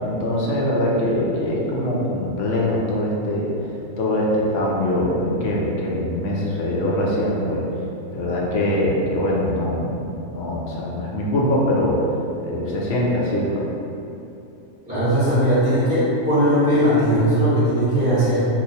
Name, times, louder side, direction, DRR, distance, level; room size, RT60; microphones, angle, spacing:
voice 1, 0.0-3.5 4.0-7.6 8.1-12.0 12.4-13.7, left 1 dB, 70° left, -4 dB, 0.9 m, -23 dB
voice 2, 14.9-18.5, equal, 5° right, -12 dB, 0.8 m, -18 dB
2.8 x 2.1 x 4.1 m, 2.7 s
omnidirectional pair, 1.4 m